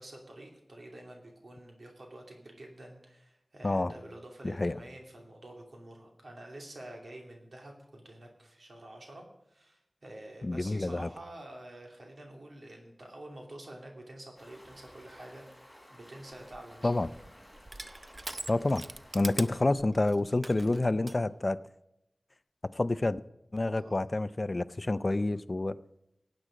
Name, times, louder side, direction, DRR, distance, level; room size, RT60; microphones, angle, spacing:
voice 1, 0.0-17.1 23.7-24.0, right 1 dB, 70° right, 2.6 m, -48 dB
voice 2, 4.4-4.8 10.4-11.1 16.8-17.1 18.5-18.8 19.1-21.6 22.7-23.2 23.5-25.8, left 2 dB, 40° left, 0.5 m, -28 dB
Stream, 14.4-19.7, equal, ahead, 4.3 m, -55 dB
Crushing, 16.3-21.2, right 2 dB, 40° right, 0.6 m, -43 dB
16.5 x 8.9 x 5.1 m
wide cardioid pair, 70°, 0 cm